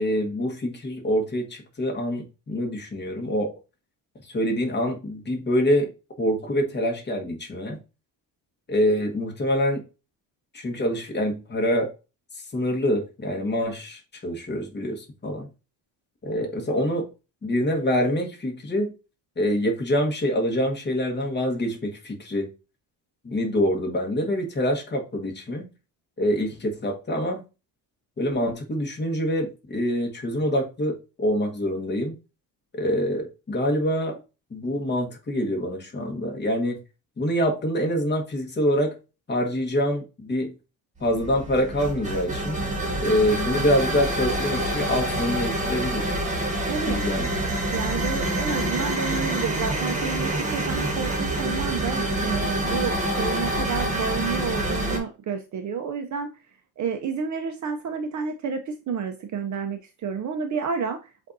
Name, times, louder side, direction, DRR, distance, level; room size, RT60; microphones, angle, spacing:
voice 1, 0.0-3.5 4.2-5.9 6.2-7.8 8.7-9.8 10.5-11.9 12.5-15.5 16.2-17.1 17.4-18.9 19.4-22.5 23.2-25.6 26.2-27.4 28.2-32.2 32.7-34.2 34.5-36.8 37.2-38.9 39.3-40.5 41.0-42.6 43.0-46.2 46.9-47.3, equal, 25° left, 1.3 m, -25 dB
sound 1, 41.0-55.0, right 1 dB, 15° right, 1.3 m, -27 dB
voice 2, 46.7-47.0 47.7-56.3 56.8-61.3, right 6 dB, 45° right, 0.6 m, -30 dB
7.7 x 2.6 x 2.6 m
cardioid pair, 110°, 42 cm